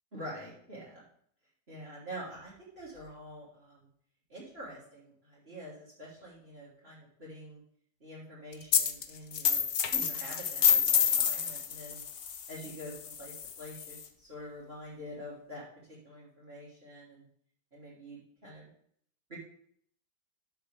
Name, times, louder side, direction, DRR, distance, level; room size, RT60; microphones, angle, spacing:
voice 1, 0.1-1.0 1.7-3.9 4.3-7.6 8.0-9.6 9.9-12.0 12.5-17.2 17.7-18.7 19.3-19.4, equal, 35° right, -8 dB, 3.6 m, -46 dB
sound 1, 8.7-9.0 9.3-14.0, left 8 dB, 60° left, 0.6 m, -28 dB
12.0 x 6.4 x 3.5 m, 0.63 s
omnidirectional pair, 1.9 m